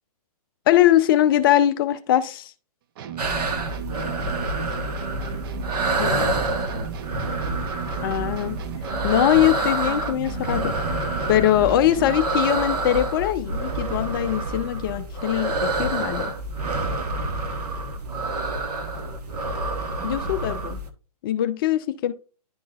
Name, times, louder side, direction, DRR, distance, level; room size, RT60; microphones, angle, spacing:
voice 1, 0.7-2.5 6.0-6.2 8.0-8.6 9.0-10.7 11.3-16.3 20.0-20.8 21.2-22.1, left 12 dB, 35° left, 0.5 m, -21 dB
sound 1, 3.0-12.4, right 9 dB, 35° right, 0.5 m, -36 dB
sound 2, 3.2-20.9, right 2 dB, 80° right, 1.2 m, -28 dB
voice 2, 3.5-5.3 5.8-7.1 7.9-8.2 18.0-19.6 19.9-20.5, right 3 dB, 60° right, 3.5 m, -41 dB
11.0 x 3.8 x 2.3 m
hypercardioid pair, 135°, 20 cm